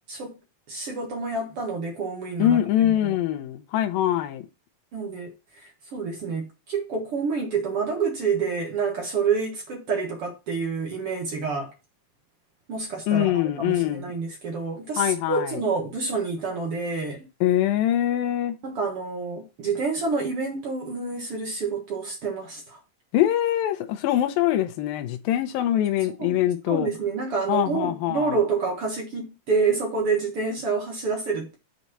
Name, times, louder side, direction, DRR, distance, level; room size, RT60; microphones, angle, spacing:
voice 1, 0.7-3.2 4.9-5.3 5.6-11.7 12.7-17.2 18.6-22.8 26.2-26.4 26.7-31.6, right 4 dB, 50° right, 1.9 m, -28 dB
voice 2, 2.4-4.4 13.1-14.1 15.0-15.5 17.4-18.6 23.1-26.9 27.5-28.4, left 12 dB, 90° left, 2.6 m, -23 dB
8.1 x 4.1 x 5.9 m
omnidirectional pair, 4.1 m